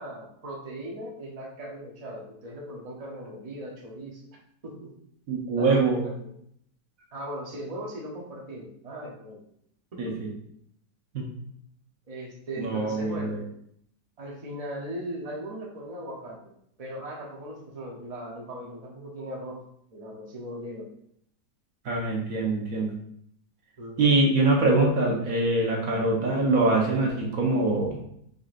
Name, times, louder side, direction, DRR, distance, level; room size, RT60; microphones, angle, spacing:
voice 1, 0.0-4.2 4.6-4.9 5.6-6.2 7.1-9.4 9.9-10.3 12.1-13.4 14.2-19.6 19.9-20.9 23.8-24.2, equal, 40° right, -1 dB, 0.5 m, -38 dB
voice 2, 5.3-6.0 10.0-10.3 11.1-11.2 12.6-13.4 21.8-22.9 24.0-28.0, right 2 dB, 60° right, -1 dB, 1.2 m, -24 dB
5.1 x 3.9 x 2.5 m, 0.71 s
omnidirectional pair, 1.9 m